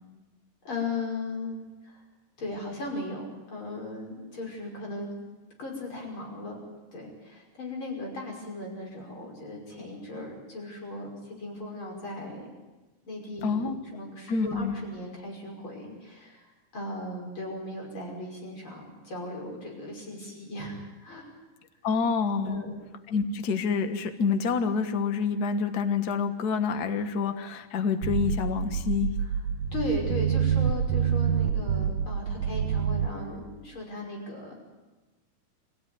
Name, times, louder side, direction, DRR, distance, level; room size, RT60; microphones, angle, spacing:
voice 1, 0.6-1.5 1.8-2.0 2.4-5.2 5.6-6.6 6.9-12.5 13.0-21.3 22.4-22.8 29.7-34.6, left 2 dB, 35° left, 0 dB, 6.3 m, -37 dB
voice 2, 13.4-13.8 14.3-14.8 21.8-22.6 23.1-29.1, left 5 dB, 55° left, 8 dB, 1.0 m, -27 dB
sound 1, 28.0-33.1, right 8 dB, 75° right, 2.5 m, -27 dB
26.0 x 15.5 x 9.5 m, 1.2 s
omnidirectional pair, 3.9 m